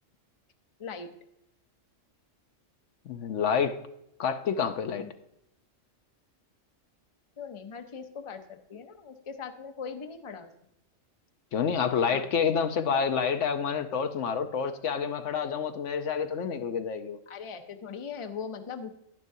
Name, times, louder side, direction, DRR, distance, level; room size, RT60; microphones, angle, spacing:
voice 1, 0.8-1.1 5.0-5.1 7.4-10.5 12.1-12.4 17.3-18.9, left 6 dB, 30° left, 6 dB, 0.7 m, -40 dB
voice 2, 3.1-3.8 4.2-5.1 11.5-17.2, left 6 dB, 70° left, 8 dB, 1.0 m, -28 dB
10.5 x 10.5 x 2.7 m, 0.80 s
omnidirectional pair, 1.3 m